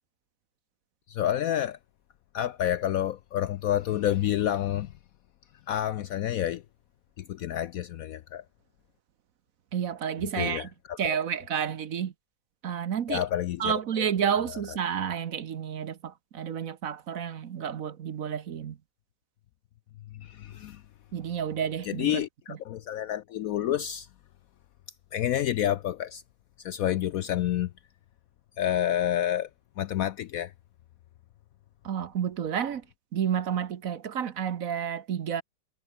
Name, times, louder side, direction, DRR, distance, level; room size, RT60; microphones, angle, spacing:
voice 1, 1.1-1.8 2.3-4.9 5.7-6.6 7.2-8.4 10.2-11.2 13.1-14.0 20.1-20.8 21.8-24.1 25.1-26.2 26.6-27.7 28.6-29.5 29.8-30.5, left 11 dB, 70° left, 0.8 m, -29 dB
voice 2, 9.7-10.7 11.0-12.1 12.6-13.2 13.6-18.8 21.1-22.2 22.5-22.6 31.8-32.8 33.1-35.4, right 8 dB, 55° right, 1.3 m, -30 dB
omnidirectional pair, 1.9 m